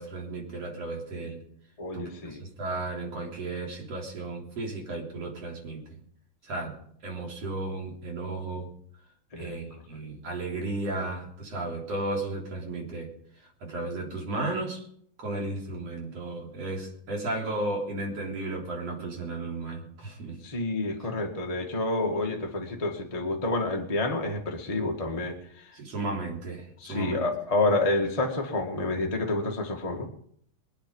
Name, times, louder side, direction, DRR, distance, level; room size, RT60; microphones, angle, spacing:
voice 1, 0.0-1.4 1.9-6.0 6.4-6.8 7.0-8.7 9.4-13.1 13.6-14.8 15.2-20.4 25.7-27.3, right 2 dB, 50° right, -1 dB, 4.5 m, -34 dB
voice 2, 1.8-2.4 9.3-9.6 20.4-25.7 26.8-30.1, left 2 dB, 15° left, 0 dB, 1.3 m, -29 dB
23.0 x 9.0 x 5.4 m, 0.64 s
omnidirectional pair, 3.8 m